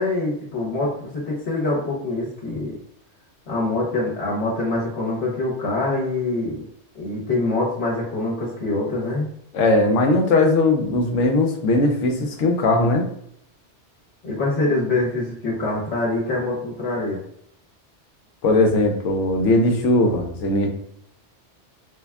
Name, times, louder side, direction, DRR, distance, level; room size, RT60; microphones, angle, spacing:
voice 1, 0.0-2.8 3.5-6.6 6.9-9.3 14.2-17.2, left 2 dB, 65° left, -4 dB, 1.2 m, -24 dB
voice 2, 9.5-13.0 18.4-20.7, left 2 dB, 90° left, 3 dB, 1.1 m, -19 dB
3.4 x 2.3 x 3.4 m, 0.70 s
omnidirectional pair, 1.2 m